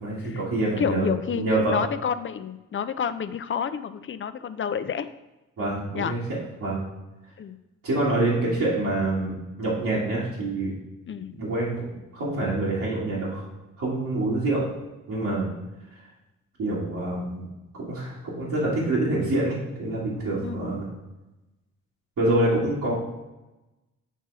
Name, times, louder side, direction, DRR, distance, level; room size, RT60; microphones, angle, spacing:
voice 1, 0.0-1.8 5.6-6.2 6.6-6.8 7.8-10.7 11.4-11.8 12.1-13.4 13.8-14.6 15.1-15.5 16.6-17.5 17.7-20.9 22.2-22.9, right 2 dB, 65° right, -9 dB, 2.1 m, -26 dB
voice 2, 0.8-5.1 5.9-6.1 7.4-7.6 11.1-11.3 20.4-20.6, left 7 dB, 35° left, 12 dB, 0.5 m, -29 dB
8.0 x 3.0 x 4.7 m, 1.0 s
supercardioid pair, 55°, 34 cm